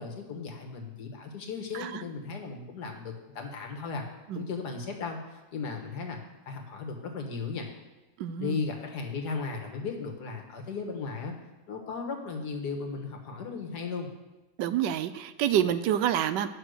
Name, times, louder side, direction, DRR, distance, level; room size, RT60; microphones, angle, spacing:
voice 1, 0.0-4.1 4.3-6.2 6.5-7.7 8.4-11.3 11.7-14.1, left 4 dB, 65° left, 3 dB, 1.8 m, -36 dB
voice 2, 8.2-8.6 14.6-16.5, right 10 dB, 80° right, 12 dB, 1.2 m, -27 dB
9.5 x 6.0 x 6.4 m, 1.1 s
omnidirectional pair, 1.9 m